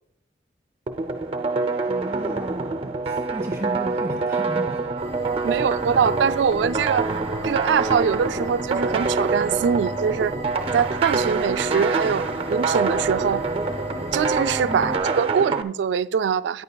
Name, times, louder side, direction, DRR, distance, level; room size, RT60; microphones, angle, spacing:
sound 1, 0.9-15.6, right 3 dB, 30° right, 0.6 m, -26 dB
voice 1, 1.8-4.9 5.4-5.6 14.6-15.0, right 1 dB, 15° right, 1.4 m, -35 dB
sound 2, 5.0-15.0, equal, 20° left, 3.8 m, -35 dB
voice 2, 5.4-7.0 7.4-10.3 10.7-13.4 14.1-16.6, right 7 dB, 85° right, 0.3 m, -23 dB
14.5 x 9.7 x 2.3 m
head